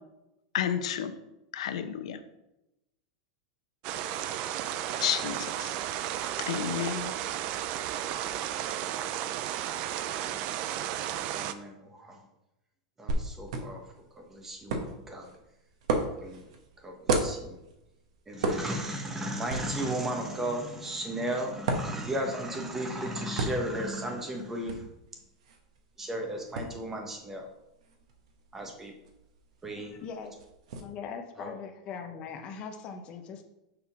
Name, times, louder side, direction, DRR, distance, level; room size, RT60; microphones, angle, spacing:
voice 1, 0.5-1.1 1.5-2.2 5.0-5.7 6.5-7.1, left 9 dB, 70° left, 10 dB, 0.7 m, -31 dB
sound 1, 3.8-11.5, right 11 dB, 35° right, 0.3 m, -33 dB
voice 2, 10.2-12.2 13.0-13.8 14.1-15.3 16.0-16.5 16.8-17.6 18.3-24.9 26.0-27.5 28.5-28.9 29.6-29.9 31.4-31.6, right 1 dB, 10° right, 2 dB, 0.9 m, -35 dB
sound 2, 13.1-30.8, right 3 dB, 70° right, 1.1 m, -37 dB
voice 3, 29.7-30.3 30.8-33.4, left 6 dB, 30° left, 6 dB, 0.7 m, -41 dB
6.7 x 3.7 x 5.8 m, 0.91 s
supercardioid pair, 170°, 3 cm